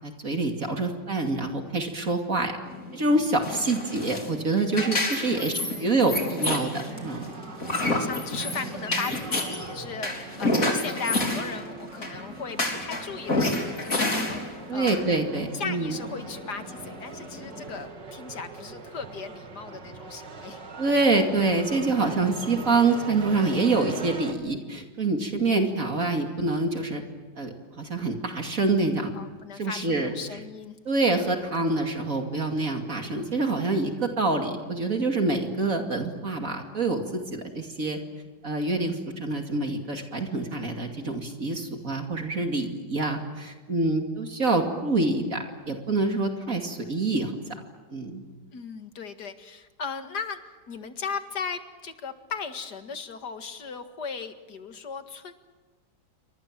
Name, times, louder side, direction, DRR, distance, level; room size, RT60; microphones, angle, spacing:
voice 1, 0.0-2.5 2.9-7.3 14.7-16.0 20.8-27.0 27.4-29.1 29.5-30.1 30.8-38.0 38.4-47.3 47.9-48.2, right 3 dB, 50° right, 4 dB, 2.9 m, -26 dB
sound 1, 2.7-17.8, left 2 dB, 50° left, 4.2 m, -30 dB
voice 2, 5.3-5.9 7.8-14.9 15.5-20.6 29.2-30.8 48.5-50.4 50.7-55.3, left 5 dB, 70° left, 8 dB, 2.4 m, -37 dB
sound 2, 6.9-24.3, right 4 dB, 85° right, 3.3 m, -42 dB
28.5 x 25.0 x 7.6 m, 1.3 s
omnidirectional pair, 1.8 m